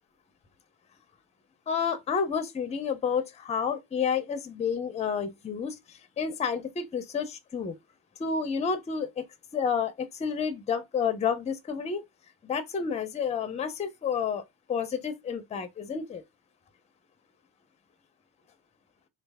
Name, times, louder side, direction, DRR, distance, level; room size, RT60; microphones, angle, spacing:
voice 1, 1.7-5.7 6.2-7.8 8.2-9.2 9.5-12.0 12.4-14.4 14.7-16.2, left 6 dB, 20° left, 0.5 m, -30 dB
3.2 x 2.4 x 3.4 m
cardioid pair, 130°, 37 cm